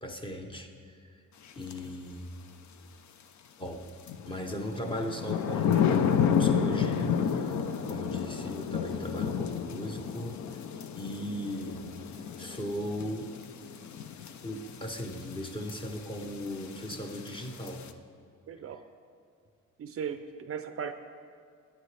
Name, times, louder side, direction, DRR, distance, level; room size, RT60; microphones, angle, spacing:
voice 1, 0.0-1.2 1.6-2.3 3.6-3.9 4.3-7.5 7.9-10.4 11.0-11.9 12.4-13.3 14.4-17.9, equal, 15° left, 4 dB, 0.8 m, -38 dB
sound 1, 1.7-1.8 4.1-17.9, left 7 dB, 65° left, 0.6 m, -31 dB
voice 2, 18.5-18.8 19.8-20.9, right 7 dB, 45° right, 9 dB, 0.5 m, -37 dB
20.5 x 9.3 x 3.3 m, 2.2 s
wide cardioid pair, 180°, 31 cm